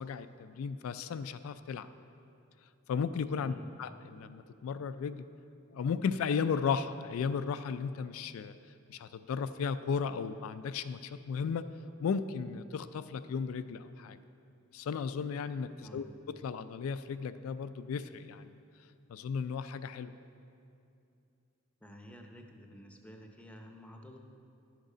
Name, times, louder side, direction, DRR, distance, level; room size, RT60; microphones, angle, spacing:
voice 1, 0.0-1.9 2.9-5.2 5.7-8.5 8.9-11.6 12.0-14.2 14.7-16.0 16.4-18.5 19.1-20.1, left 6 dB, 80° left, 11 dB, 0.3 m, -35 dB
voice 2, 3.4-3.7 15.8-16.1 21.8-24.2, equal, 5° left, 3 dB, 0.6 m, -51 dB
11.0 x 6.5 x 5.0 m, 2.6 s
head